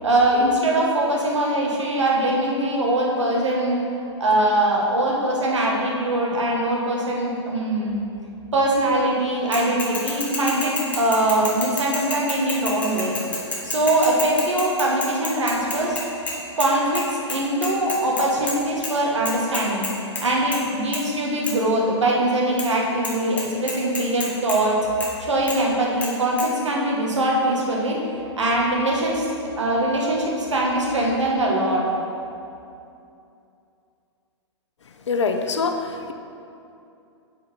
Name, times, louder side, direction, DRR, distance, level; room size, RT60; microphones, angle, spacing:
voice 1, 0.0-3.8 4.2-8.0 8.5-13.1 13.6-16.0 16.6-19.8 20.2-24.8 25.2-28.0 28.4-31.8, right 1 dB, 80° right, -2 dB, 1.7 m, -22 dB
Bicycle / Mechanisms, 9.5-16.7 17.0-17.1 17.3-18.6 18.8-18.9 19.3-20.2 20.5-20.7 20.9-21.0 21.4-21.5 22.6-22.7 23.0-23.1 23.4-24.6 25.0-25.1 25.5-25.6 26.0-26.1 26.4-26.5, left 2 dB, 10° left, 1.3 m, -29 dB
voice 2, 35.1-36.1, left 4 dB, 70° left, 6 dB, 0.7 m, -24 dB
8.4 x 5.0 x 4.5 m, 2.6 s
figure-of-eight pair, 115°, 15 cm